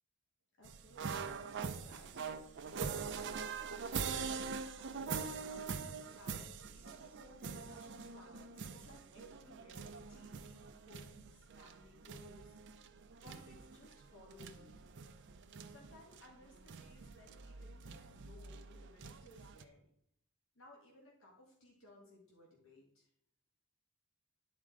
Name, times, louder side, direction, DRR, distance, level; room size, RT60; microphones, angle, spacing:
voice 1, 0.6-12.6 13.2-14.9 15.7-19.9 20.6-23.1, left 1 dB, 60° left, -2 dB, 1.8 m, -60 dB
sound 1, 0.6-19.6, right 5 dB, 55° right, 0.5 m, -44 dB
10.5 x 4.3 x 3.7 m, 0.70 s
head